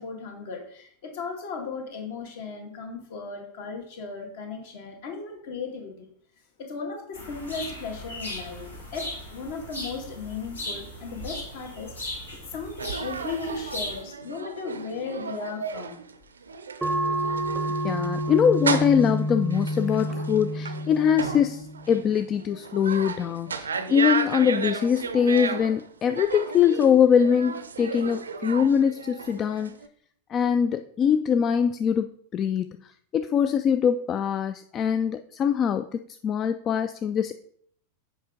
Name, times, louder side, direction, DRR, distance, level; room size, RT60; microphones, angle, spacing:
voice 1, 0.0-6.1 6.6-8.7 8.9-12.2 12.5-16.0, left 4 dB, 50° left, 3 dB, 1.8 m, -36 dB
sound 1, 7.1-14.0, left 1 dB, 80° left, 2.6 m, -38 dB
sound 2, 12.8-29.9, right 5 dB, 70° right, 0.5 m, -34 dB
sound 3, 16.8-21.9, right 1 dB, 10° right, 0.7 m, -29 dB
voice 2, 17.8-29.7 30.3-32.1 32.3-32.8 33.1-37.3, left 7 dB, 30° left, 10 dB, 0.3 m, -23 dB
7.6 x 5.0 x 3.7 m, 0.64 s
figure-of-eight pair, 90°, 0 cm